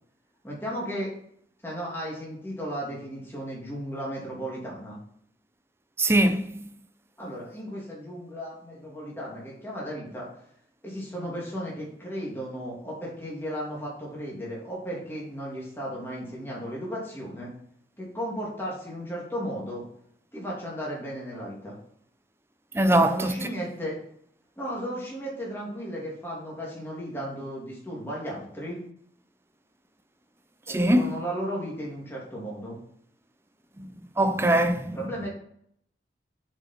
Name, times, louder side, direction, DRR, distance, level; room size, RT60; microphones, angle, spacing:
voice 1, 0.4-1.1 1.6-5.0 7.2-10.3 10.8-17.5 18.0-19.8 20.3-21.8 22.9-24.0 24.6-28.8 30.7-32.8 34.9-35.3, equal, 15° left, 2.6 m, -35 dB
voice 2, 6.0-6.7 22.7-23.5 30.7-31.1 33.8-33.9 34.2-35.1, right 1 dB, 15° right, 0.5 m, -22 dB
7.9 x 5.3 x 4.3 m
head